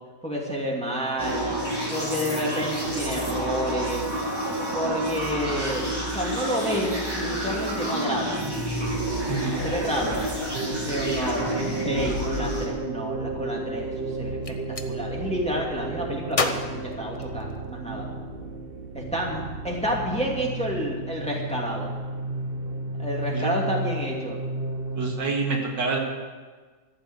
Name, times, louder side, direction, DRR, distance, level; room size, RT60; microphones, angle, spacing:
voice 1, 0.2-1.5 1.9-4.1 4.7-5.9 6.1-8.4 9.6-10.2 10.9-11.6 11.8-14.4 14.8-18.0 18.9-21.9 23.0-24.4, equal, 5° left, -3 dB, 2.5 m, -29 dB
sound 1, 1.2-12.7, right 1 dB, 15° right, 2.8 m, -29 dB
voice 2, 9.3-9.6 23.3-23.5 24.9-26.0, right 4 dB, 80° right, 0 dB, 2.7 m, -27 dB
sound 2, 10.5-25.1, right 2 dB, 40° right, 1.0 m, -33 dB
Gunshot gunfire, 14.2-14.9 16.3-17.8, left 3 dB, 35° left, 0.5 m, -30 dB
14.0 x 7.6 x 9.2 m, 1.4 s
omnidirectional pair, 1.9 m